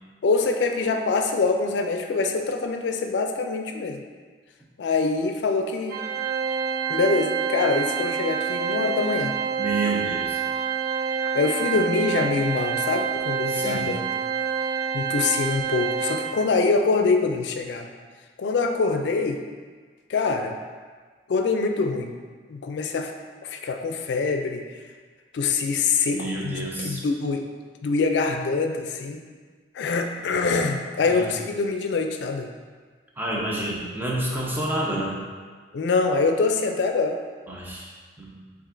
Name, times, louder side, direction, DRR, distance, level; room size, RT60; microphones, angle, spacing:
voice 1, 0.2-4.0 4.8-6.0 6.9-9.4 11.3-14.1 14.9-17.9 18.4-19.4 20.1-20.5 21.3-22.1 22.5-23.1 23.4-24.7 25.3-27.4 27.8-29.2 29.7-32.5 35.7-37.2, left 4 dB, 80° left, 4 dB, 0.4 m, -24 dB
Organ, 5.9-16.6, right 7 dB, 55° right, 0.3 m, -27 dB
voice 2, 9.6-10.4 13.5-13.9 26.1-27.0 31.0-31.3 33.2-35.2 37.5-37.9 38.2-38.3, right 2 dB, 10° right, -4 dB, 0.7 m, -29 dB
7.2 x 2.5 x 2.5 m, 1.5 s
head